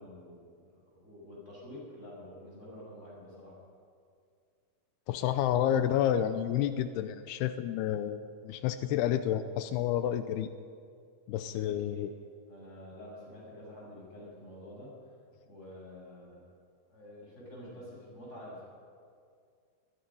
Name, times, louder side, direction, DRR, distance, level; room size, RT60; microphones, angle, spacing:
voice 1, 0.0-3.6 11.5-12.1 12.5-14.9 15.5-16.4 16.9-18.7, left 1 dB, 15° left, -5 dB, 7.8 m, -48 dB
voice 2, 5.1-10.5 11.3-12.1, left 10 dB, 85° left, 10 dB, 2.8 m, -30 dB
23.0 x 21.5 x 5.5 m, 2.2 s
omnidirectional pair, 4.6 m